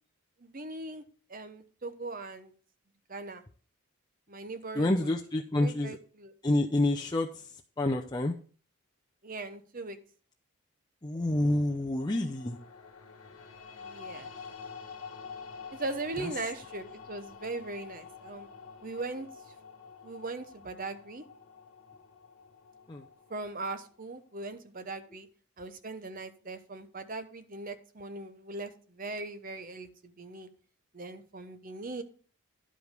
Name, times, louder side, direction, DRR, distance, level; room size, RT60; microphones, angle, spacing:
voice 1, 0.4-1.0 1.3-2.5 3.1-3.4 4.3-5.1 5.6-6.3 9.2-10.0 13.7-14.3 15.7-18.5 18.8-19.3 20.0-21.2 23.3-25.3 25.6-30.5 30.9-32.0, right 3 dB, 40° right, 10 dB, 0.8 m, -39 dB
voice 2, 4.7-6.0 6.4-7.5 7.8-8.3 11.0-12.6 16.2-16.3 22.9-23.0, left 1 dB, 20° left, 0 dB, 0.6 m, -28 dB
sound 1, 12.0-24.2, left 5 dB, 75° left, 1.5 m, -48 dB
11.0 x 5.1 x 5.2 m, 0.42 s
head